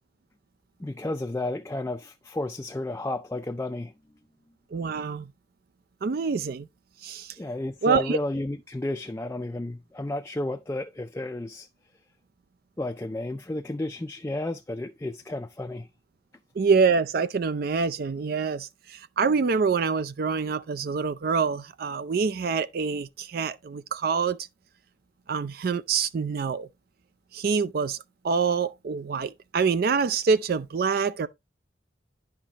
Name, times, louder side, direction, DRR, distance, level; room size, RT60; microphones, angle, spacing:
voice 1, 0.8-3.9 7.4-11.7 12.8-15.9, left 2 dB, 15° left, 0.4 m, -32 dB
voice 2, 4.7-5.3 6.0-6.7 7.0-7.4 7.8-8.2 16.6-24.4 25.3-26.7 27.3-28.0 28.2-31.3, right 5 dB, 50° right, 0.4 m, -26 dB
10.0 x 5.8 x 2.8 m
head